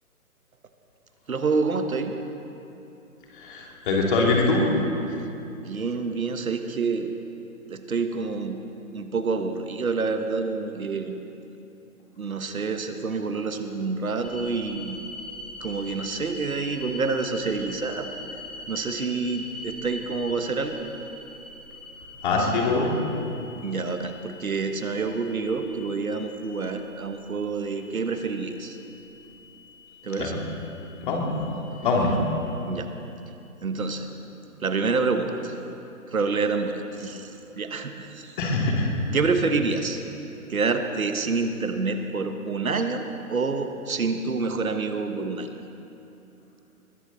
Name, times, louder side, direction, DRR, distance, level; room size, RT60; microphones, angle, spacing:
voice 1, 1.3-2.2 5.5-7.1 7.7-8.6 8.9-11.2 12.2-15.0 15.6-18.1 18.7-20.9 23.6-28.8 30.0-30.4 32.6-32.9 33.6-34.1 34.5-35.6 36.1-38.4 39.1-40.0 40.5-45.5, right 4 dB, 70° right, 7 dB, 1.4 m, -27 dB
voice 2, 3.3-4.6 22.2-22.9 30.2-30.4 31.0-31.5 31.8-32.2 38.4-38.9, left 3 dB, 35° left, -1 dB, 2.8 m, -23 dB
sound 1, 14.2-33.3, left 2 dB, ahead, 1.5 m, -43 dB
21.5 x 14.5 x 4.1 m, 2.8 s
figure-of-eight pair, 135°, 44 cm